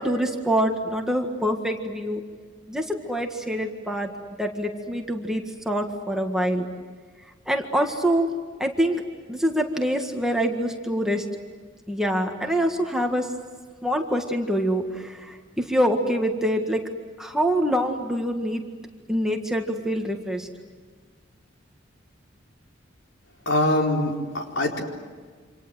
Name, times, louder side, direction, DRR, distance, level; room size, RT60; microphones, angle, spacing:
voice 1, 0.0-2.2 2.7-4.1 4.4-6.7 7.5-8.3 8.6-9.0 9.3-11.3 11.9-13.3 13.8-16.8 17.2-18.6 19.1-20.5, equal, 5° right, 2 dB, 1.8 m, -25 dB
voice 2, 23.5-24.8, left 1 dB, 70° left, 1 dB, 4.3 m, -23 dB
28.0 x 27.0 x 7.7 m, 1.6 s
head